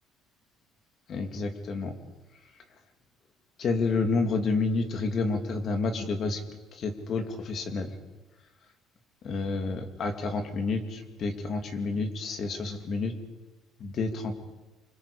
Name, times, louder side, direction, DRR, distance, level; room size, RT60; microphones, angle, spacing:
voice 1, 1.1-1.9 3.6-6.4 6.7-7.9 9.2-13.1 13.8-14.3, left 3 dB, 45° left, 6 dB, 2.6 m, -29 dB
26.5 x 25.0 x 5.1 m, 1.2 s
cardioid pair, 145°, 0 cm